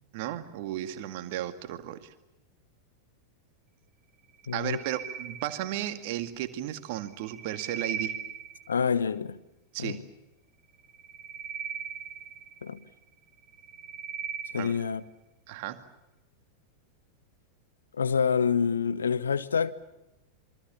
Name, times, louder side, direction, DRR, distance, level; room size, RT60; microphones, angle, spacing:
voice 1, 0.1-2.1 4.5-8.1 9.7-10.0 14.6-14.7 15.5-15.8, right 13 dB, 50° right, 2.1 m, -34 dB
sound 1, 4.4-6.1 7.0-8.9 10.8-12.9 13.4-15.0, right 7 dB, 30° right, 1.3 m, -39 dB
voice 2, 4.5-4.8 8.7-9.4 9.8-10.0 12.6-12.8 14.5-15.0 17.9-19.7, left 6 dB, 70° left, 1.1 m, -27 dB
27.0 x 23.5 x 7.3 m
figure-of-eight pair, 90°, 0 cm